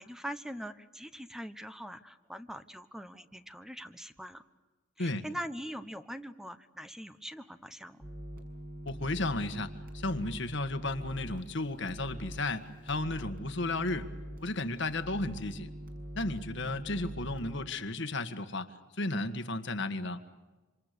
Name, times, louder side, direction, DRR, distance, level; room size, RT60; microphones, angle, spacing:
voice 1, 0.0-4.4 5.0-8.0, equal, 5° right, 10 dB, 1.1 m, -42 dB
sound 1, 8.0-17.7, equal, 50° right, 6.6 m, -44 dB
voice 2, 8.8-14.1 14.4-15.7 16.1-18.7 19.0-20.2, left 2 dB, 65° left, 10 dB, 1.7 m, -34 dB
27.5 x 26.5 x 6.9 m, 1.2 s
head